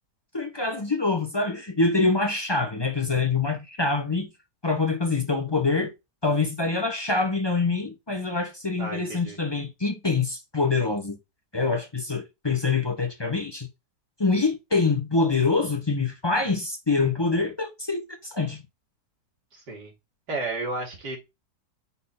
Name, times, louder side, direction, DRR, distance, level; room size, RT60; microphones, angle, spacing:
voice 1, 0.3-4.3 4.6-5.9 6.2-11.2 11.5-13.7 14.2-18.6, left 3 dB, 30° left, 0.5 m, -25 dB
voice 2, 8.8-9.4 19.5-19.9 20.3-21.2, right 2 dB, 75° right, 3.1 m, -32 dB
5.5 x 4.1 x 4.1 m
omnidirectional pair, 1.8 m